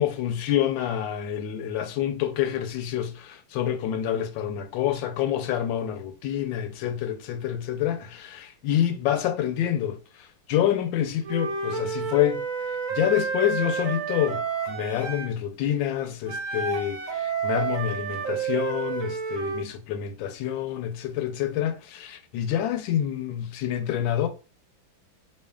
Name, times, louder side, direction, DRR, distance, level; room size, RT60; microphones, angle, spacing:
voice 1, 0.0-12.4 12.9-24.3, left 10 dB, 80° left, 1.3 m, -27 dB
Wind instrument woodwind instrument, 11.2-15.3 16.3-19.6, right 6 dB, 60° right, 0.9 m, -30 dB
4.1 x 3.2 x 2.3 m
omnidirectional pair, 2.1 m